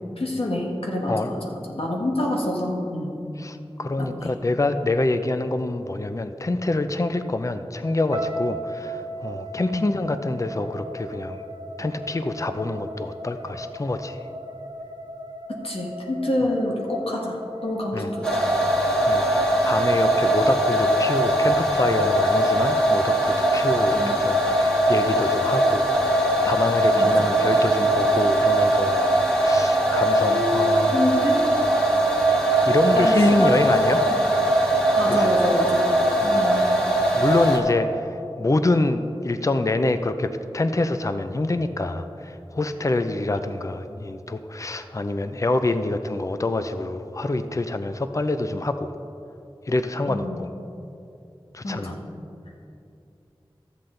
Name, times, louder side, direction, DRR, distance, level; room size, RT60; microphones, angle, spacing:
voice 1, 0.2-3.1 4.0-4.3 9.7-9.9 15.5-18.4 23.9-24.1 26.9-27.1 30.2-31.4 32.9-33.7 35.0-35.8 36.2-36.9 50.1-50.4 51.6-52.0, left 1 dB, 80° left, -2 dB, 1.5 m, -27 dB
voice 2, 3.4-11.4 11.8-14.2 17.9-18.1 19.1-29.0 29.4-31.0 32.6-34.0 35.1-35.3 36.2-36.7 37.1-38.1 38.4-48.9 49.7-50.5 51.5-51.9, left 2 dB, 35° left, 9 dB, 0.5 m, -26 dB
sound 1, 8.1-20.3, right 1 dB, 50° right, 0.9 m, -37 dB
sound 2, 18.2-37.6, right 1 dB, 10° left, 1.8 m, -20 dB
13.0 x 7.7 x 3.8 m, 2.7 s
wide cardioid pair, 60°, 10 cm